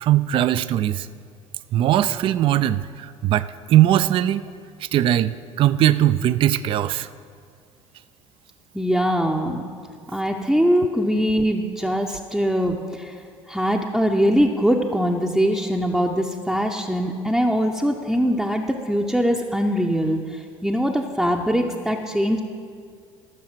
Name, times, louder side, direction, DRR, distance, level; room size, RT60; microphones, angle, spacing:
voice 1, 0.0-1.1 1.7-4.5 4.9-7.1, right 12 dB, 35° right, 14 dB, 0.4 m, -20 dB
voice 2, 8.7-9.6 10.1-13.2 13.5-22.4, equal, ahead, 1 dB, 0.7 m, -22 dB
14.0 x 6.3 x 6.1 m, 2.2 s
figure-of-eight pair, 60°, 16 cm